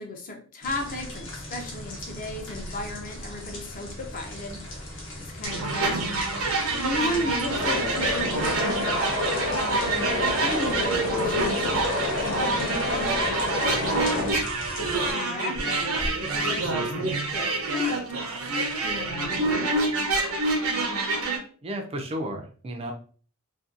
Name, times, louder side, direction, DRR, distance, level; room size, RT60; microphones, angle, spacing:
voice 1, 0.0-4.6 5.3-6.4 6.8-8.8 10.3-14.3 14.8-18.3 18.8-20.1, left 1 dB, 40° left, 2 dB, 0.5 m, -35 dB
sound 1, 0.6-15.1, left 1 dB, 60° left, 0.9 m, -39 dB
sound 2, 5.4-21.4, right 2 dB, 75° right, 0.7 m, -27 dB
sound 3, 7.5-14.3, left 2 dB, 85° left, 1.1 m, -29 dB
voice 2, 21.6-22.9, equal, 25° right, 3 dB, 0.3 m, -33 dB
2.6 x 2.2 x 2.4 m, 0.42 s
head